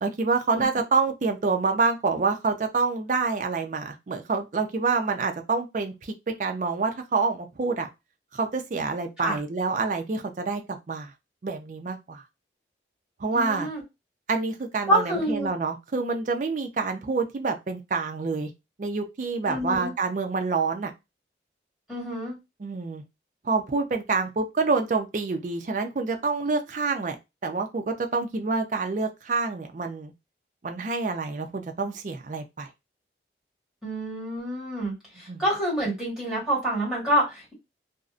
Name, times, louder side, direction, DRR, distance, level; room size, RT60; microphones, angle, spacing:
voice 1, 0.0-7.9 8.3-11.1 11.4-12.2 13.2-13.7 14.3-18.5 18.8-20.9 22.6-23.0 23.4-27.2 27.4-30.1 30.6-32.7 35.3-35.4, right 4 dB, 45° right, 0.4 m, -27 dB
voice 2, 13.3-13.8 14.9-15.5 19.5-19.9 21.9-22.3 33.8-37.5, equal, 5° right, 1.5 m, -27 dB
2.5 x 2.0 x 2.4 m
head